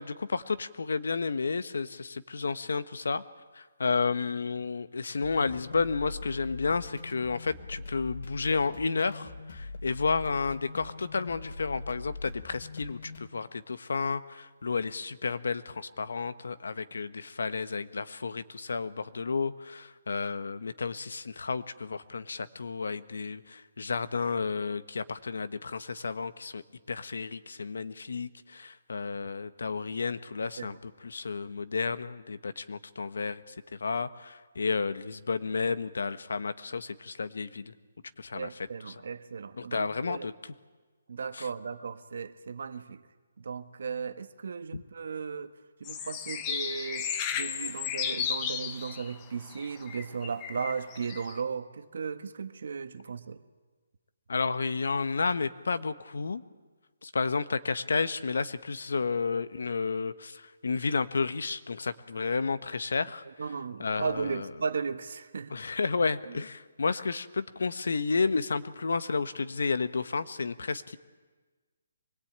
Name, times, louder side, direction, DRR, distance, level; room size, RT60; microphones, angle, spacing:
voice 1, 0.0-3.2 3.5-26.6 26.9-37.7 38.2-38.9 39.6-40.5 41.3-41.5 44.7-44.8 54.3-56.4 57.0-63.2 63.8-64.5 65.5-71.0, left 4 dB, 75° left, 12 dB, 1.2 m, -31 dB
sound 1, 5.2-13.3, left 3 dB, 45° left, 2.9 m, -42 dB
voice 2, 38.3-40.3 41.1-43.0 43.4-45.5 45.8-53.4 63.4-65.5 66.3-66.4, right 5 dB, 55° right, 10 dB, 1.3 m, -36 dB
sound 2, 45.8-49.2 49.5-51.4, left 8 dB, 15° left, 0.9 m, -34 dB
24.0 x 21.0 x 8.8 m, 1.4 s
hypercardioid pair, 175°, 0 cm